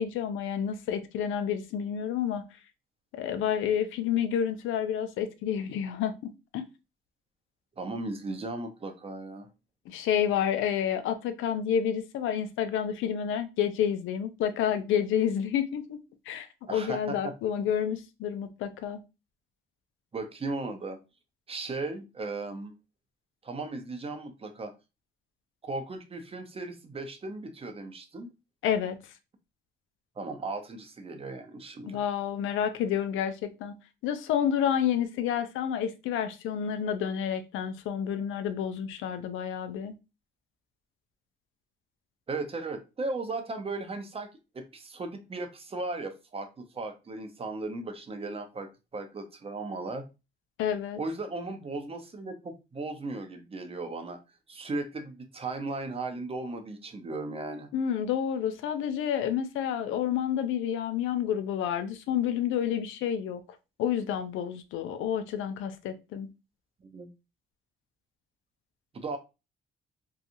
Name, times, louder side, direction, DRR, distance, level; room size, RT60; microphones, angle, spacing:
voice 1, 0.0-2.4 3.2-6.7 9.9-16.0 16.3-19.0 28.6-29.0 31.9-33.7 34.0-39.9 50.6-51.0 57.7-63.4 63.8-66.3, left 9 dB, 85° left, 0.4 m, -29 dB
voice 2, 7.8-9.5 16.7-17.3 20.1-21.0 21.5-22.7 23.4-24.7 25.6-28.3 30.2-32.0 42.3-44.3 44.5-50.1 51.0-54.2 54.5-57.7 66.8-67.1 68.9-69.2, right 3 dB, 30° right, 0.6 m, -36 dB
2.8 x 2.3 x 2.5 m
cardioid pair, 90°, 20 cm